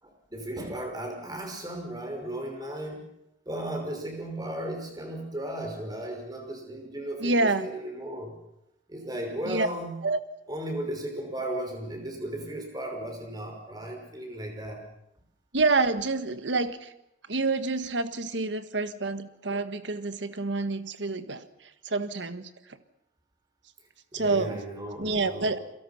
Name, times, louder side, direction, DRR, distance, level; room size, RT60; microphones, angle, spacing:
voice 1, 0.0-3.1 3.5-8.3 8.9-10.0 10.5-14.8 24.1-25.5, right 1 dB, 20° right, 3 dB, 5.7 m, -35 dB
voice 2, 7.2-7.7 9.4-9.7 10.0-10.2 15.5-16.9 17.3-22.8 24.1-24.6 25.0-25.6, right 3 dB, 80° right, 11 dB, 1.5 m, -28 dB
30.0 x 23.0 x 5.9 m, 0.80 s
head